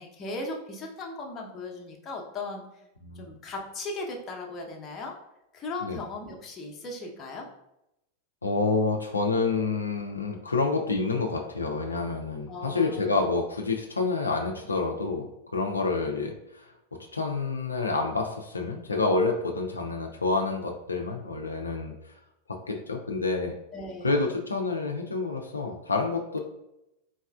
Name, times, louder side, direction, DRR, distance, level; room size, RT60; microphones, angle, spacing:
voice 1, 0.0-2.7 3.1-5.2 5.5-7.5 12.5-13.1 23.7-24.3, left 2 dB, 25° left, 0 dB, 0.8 m, -37 dB
voice 2, 8.4-16.7 17.1-22.2 22.5-23.5 24.0-26.4, left 3 dB, 80° left, 2 dB, 0.4 m, -28 dB
4.1 x 3.1 x 2.3 m, 0.87 s
figure-of-eight pair, 90°, 0 cm